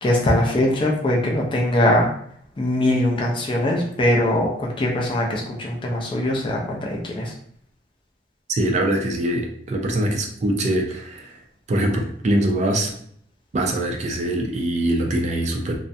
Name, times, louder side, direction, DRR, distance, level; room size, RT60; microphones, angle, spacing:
voice 1, 0.0-2.1 2.6-7.3, left 1 dB, 25° left, -1 dB, 0.4 m, -21 dB
voice 2, 8.5-11.3 11.7-12.9 13.5-15.8, right 1 dB, 40° right, 2 dB, 0.3 m, -23 dB
2.3 x 2.1 x 2.6 m, 0.64 s
head